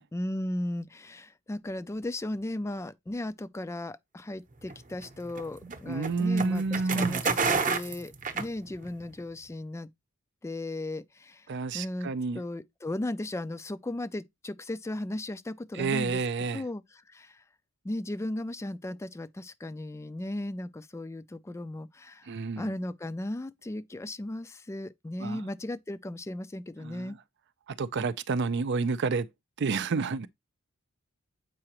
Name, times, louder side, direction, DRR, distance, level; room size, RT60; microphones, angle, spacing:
voice 1, 0.1-9.9 10.4-11.5 11.7-12.1 12.3-16.2 16.5-17.4 17.8-27.2, left 1 dB, 15° left, 0.3 m, -36 dB
sound 1, 4.6-9.1, right 5 dB, 40° right, 0.8 m, -30 dB
voice 2, 5.6-7.2 11.5-12.4 15.7-16.6 22.3-22.7 25.2-25.5 26.8-27.2 27.7-29.3 29.6-30.3, right 4 dB, 55° right, 0.5 m, -30 dB
7.6 x 4.8 x 2.9 m
head